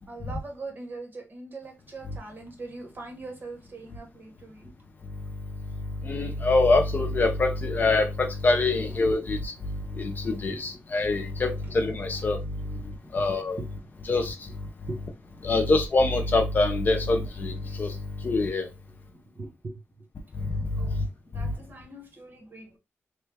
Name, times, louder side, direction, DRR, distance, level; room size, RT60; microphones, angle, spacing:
voice 1, 0.1-4.7 10.0-10.7 12.8-13.1 13.6-13.7 14.9-15.0 19.3-19.8 20.8-21.0 21.3-22.8, right 2 dB, 40° right, 1.0 m, -41 dB
voice 2, 6.0-9.5 10.0-12.4 13.1-13.6 14.1-14.3 15.4-17.9 18.2-18.7 20.4-20.5, left 3 dB, 40° left, 0.5 m, -24 dB
3.1 x 2.3 x 3.3 m
wide cardioid pair, 175°, 5 cm